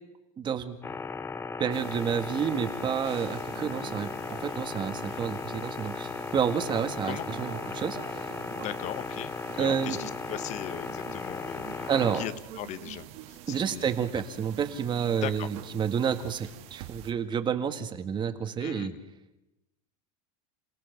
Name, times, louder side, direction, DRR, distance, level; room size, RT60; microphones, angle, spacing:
voice 1, 0.4-0.8 1.6-8.3 9.6-10.0 11.9-12.2 13.5-18.9, right 7 dB, 25° right, 8 dB, 1.7 m, -30 dB
sound 1, 0.8-12.3, left 5 dB, 10° left, 0.7 m, -37 dB
sound 2, 1.7-17.1, right 12 dB, 60° right, 2.3 m, -46 dB
voice 2, 8.5-14.0 15.2-15.5 18.6-19.0, left 11 dB, 40° left, 14 dB, 1.3 m, -39 dB
28.5 x 17.0 x 6.8 m, 0.97 s
supercardioid pair, 140°, 19 cm